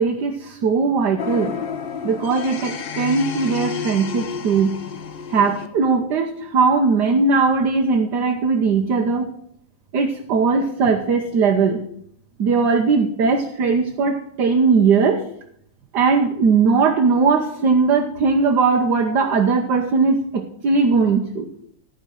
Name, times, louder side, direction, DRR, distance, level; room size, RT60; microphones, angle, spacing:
voice 1, 0.0-1.5 2.0-4.8 5.3-9.3 9.9-11.8 12.4-15.2 15.9-21.5, right 4 dB, 65° right, 2 dB, 1.6 m, -19 dB
sound 1, 1.2-5.7, left 7 dB, 55° left, 0.6 m, -30 dB
14.0 x 5.2 x 7.7 m, 0.66 s
omnidirectional pair, 2.0 m